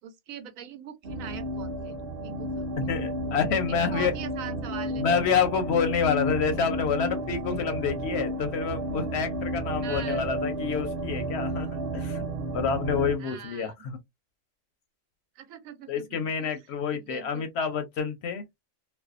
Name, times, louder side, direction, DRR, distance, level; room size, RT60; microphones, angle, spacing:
voice 1, 0.0-1.9 2.2-2.8 3.7-5.0 9.8-10.3 13.2-13.7 15.4-16.6 16.9-17.5, right 9 dB, 85° right, 1.0 m, -42 dB
sound 1, 1.0-13.2, right 1 dB, 55° right, 0.7 m, -32 dB
voice 2, 2.8-4.1 5.0-12.2 12.5-14.0 15.9-18.4, left 6 dB, 65° left, 0.7 m, -28 dB
2.5 x 2.1 x 2.3 m
omnidirectional pair, 1.4 m